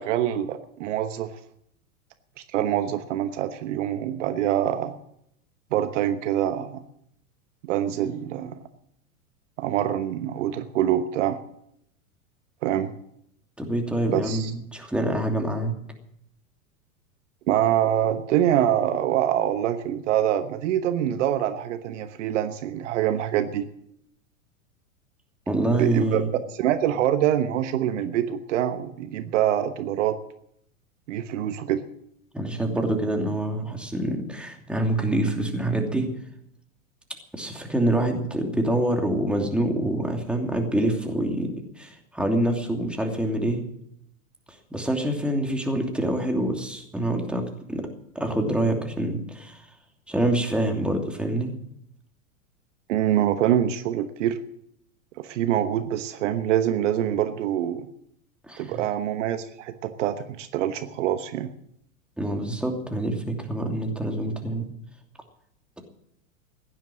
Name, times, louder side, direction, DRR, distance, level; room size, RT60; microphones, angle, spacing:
voice 1, 0.0-1.4 2.4-4.9 5.7-6.8 7.6-8.6 9.6-11.4 12.6-12.9 14.1-14.5 17.5-23.7 25.8-26.2 26.5-30.2 31.1-31.8 52.9-54.4 55.2-57.9 58.6-61.5, right 11 dB, 60° right, 10 dB, 1.2 m, -25 dB
voice 2, 13.6-15.8 25.5-26.3 32.3-36.1 37.3-43.6 44.7-47.9 48.1-49.6 50.1-51.5 58.4-58.8 62.2-64.7, right 1 dB, 5° right, 2 dB, 2.8 m, -26 dB
16.0 x 10.5 x 7.5 m, 0.73 s
hypercardioid pair, 100°, 41 cm